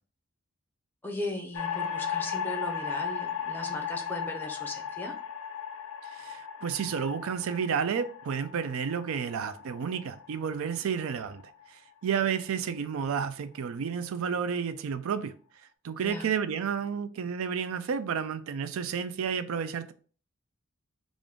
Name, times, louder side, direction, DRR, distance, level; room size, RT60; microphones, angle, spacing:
voice 1, 1.0-5.2 16.0-16.3, left 1 dB, 10° left, 0.5 m, -37 dB
sound 1, 1.5-11.9, left 7 dB, 85° left, 0.5 m, -36 dB
voice 2, 6.0-11.4 11.7-15.3 15.8-19.9, right 7 dB, 80° right, 0.4 m, -31 dB
3.5 x 2.5 x 3.6 m
head